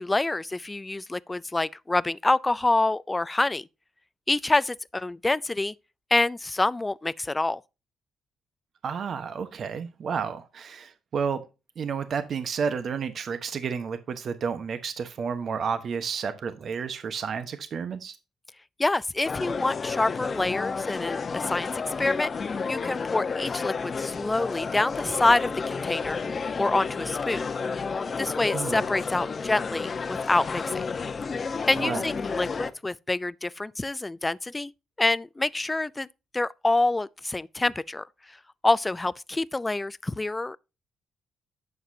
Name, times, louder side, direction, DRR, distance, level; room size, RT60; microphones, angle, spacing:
voice 1, 0.0-3.7 4.3-5.7 6.1-7.6 18.8-22.3 22.7-27.4 28.2-30.8 31.7-34.7 35.0-36.1 36.3-38.1 38.6-40.6, left 2 dB, 15° left, 0.4 m, -26 dB
voice 2, 8.8-11.4 11.8-18.2 28.5-28.8 31.8-32.0, right 6 dB, 55° right, 1.1 m, -31 dB
sound 1, 19.2-32.7, left 5 dB, 40° left, 0.9 m, -31 dB
11.0 x 7.7 x 2.7 m
cardioid pair, 90°, 0 cm